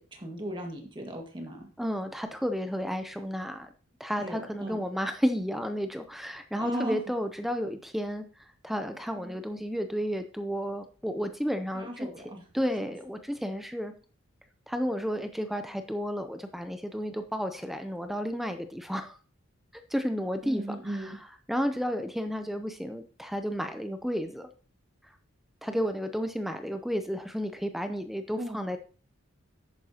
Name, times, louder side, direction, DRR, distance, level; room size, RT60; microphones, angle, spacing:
voice 1, 0.0-1.7 4.2-4.8 6.6-7.1 9.2-9.4 11.7-12.4 20.4-21.2 28.4-28.6, equal, 20° right, 2 dB, 1.8 m, -37 dB
voice 2, 1.8-3.7 4.0-12.1 12.5-13.9 14.7-19.2 19.7-24.5 25.6-28.8, equal, ahead, 8 dB, 0.5 m, -32 dB
11.0 x 9.0 x 2.9 m, 0.39 s
head